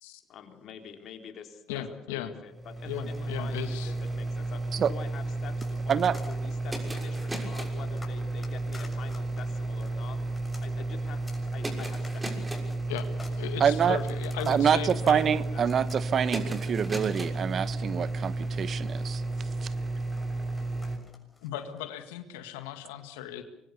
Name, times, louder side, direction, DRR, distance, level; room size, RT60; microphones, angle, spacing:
voice 1, 0.3-10.2 10.6-12.6 13.7-15.8, left 8 dB, 60° left, 5 dB, 3.7 m, -46 dB
voice 2, 1.7-2.3 2.8-3.9 12.9-13.1 13.4-15.4 21.4-23.4, left 10 dB, 80° left, 9 dB, 1.8 m, -37 dB
sound 1, 2.5-21.0, right 2 dB, 15° right, 6.4 m, -32 dB
sound 2, 3.0-4.2 5.6-6.5 7.2-17.7 18.8-21.8, left 3 dB, 25° left, 6.8 m, -53 dB
voice 3, 13.6-14.0 14.5-19.2, right 8 dB, 50° right, 16 dB, 1.2 m, -26 dB
25.0 x 22.5 x 6.9 m, 0.82 s
hypercardioid pair, 60°, 0 cm